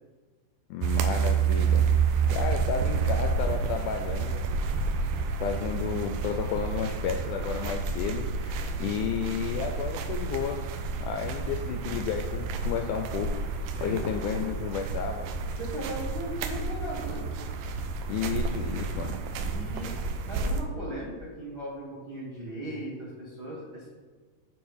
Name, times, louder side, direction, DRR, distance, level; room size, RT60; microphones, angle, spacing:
voice 1, 0.7-1.8 2.3-4.4 5.4-10.6 11.0-13.3 13.8-15.6 18.1-19.2, left 7 dB, 85° left, 5 dB, 1.8 m, -32 dB
sound 1, 0.8-20.6, right 5 dB, 80° right, 2.3 m, -29 dB
voice 2, 15.6-17.3 19.4-23.9, right 1 dB, 60° right, -5 dB, 1.0 m, -38 dB
8.4 x 4.3 x 5.6 m, 1.4 s
omnidirectional pair, 4.1 m